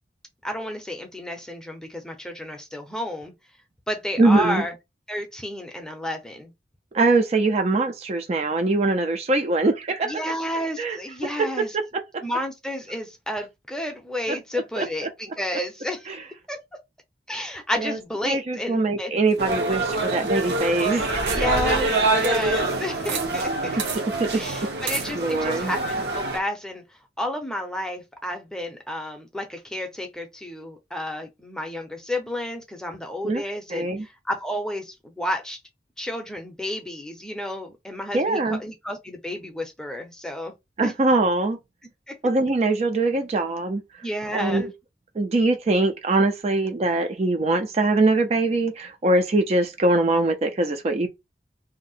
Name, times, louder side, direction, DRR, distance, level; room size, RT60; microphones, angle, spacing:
voice 1, 0.4-3.3 3.9-4.7 5.1-6.5 10.0-11.8 12.2-16.1 16.5-16.6 17.3-19.2 21.3-23.8 24.4-26.8 27.2-35.6 36.0-40.5 40.8-40.9 42.1-42.2 44.0-44.7, left 1 dB, 5° left, 0.6 m, -31 dB
voice 2, 4.2-4.6 6.9-10.2 10.8-11.0 11.6-11.8 12.1-12.2 14.8-15.1 16.1-16.2 17.8-18.0 18.3-21.4 23.9-24.3 25.1-25.7 33.2-33.4 33.7-34.1 38.1-38.6 40.8-41.6 42.2-43.8 44.3-44.7 45.2-51.1, right 2 dB, 35° right, 0.4 m, -22 dB
sound 1, 19.3-23.3 23.5-23.6 23.8-24.0 24.9-25.1, right 6 dB, 80° right, 1.1 m, -35 dB
sound 2, 19.4-26.4, right 2 dB, 65° right, 0.8 m, -25 dB
2.7 x 2.1 x 4.0 m
head